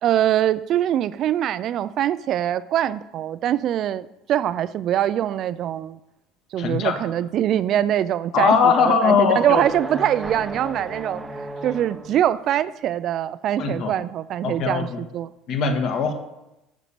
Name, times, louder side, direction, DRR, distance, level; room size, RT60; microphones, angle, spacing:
voice 1, 0.0-6.0 6.5-11.2 11.6-15.3, right 11 dB, 40° right, 17 dB, 0.4 m, -23 dB
voice 2, 6.6-7.0 8.3-9.6 13.6-13.9 14.4-15.0 15.5-16.1, left 5 dB, 45° left, 6 dB, 1.5 m, -20 dB
sound 1, 9.5-12.4, right 1 dB, 10° right, 0.7 m, -34 dB
9.3 x 7.3 x 6.7 m, 0.94 s
cardioid pair, 165°, 0 cm